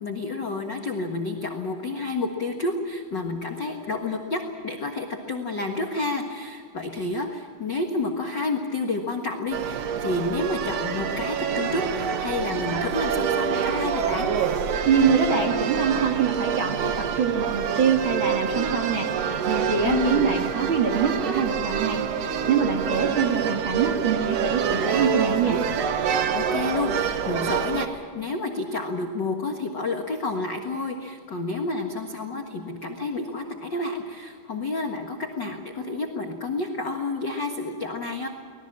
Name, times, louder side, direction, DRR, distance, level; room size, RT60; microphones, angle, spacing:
voice 1, 0.0-14.3 19.8-20.3 22.8-23.2 26.3-38.3, left 2 dB, 80° left, 3 dB, 1.0 m, -30 dB
sound 1, 9.5-27.9, right 7 dB, 85° right, 1.4 m, -26 dB
voice 2, 14.9-25.6, right 6 dB, 45° right, 2 dB, 1.8 m, -24 dB
25.0 x 19.5 x 7.5 m, 2.3 s
omnidirectional pair, 4.7 m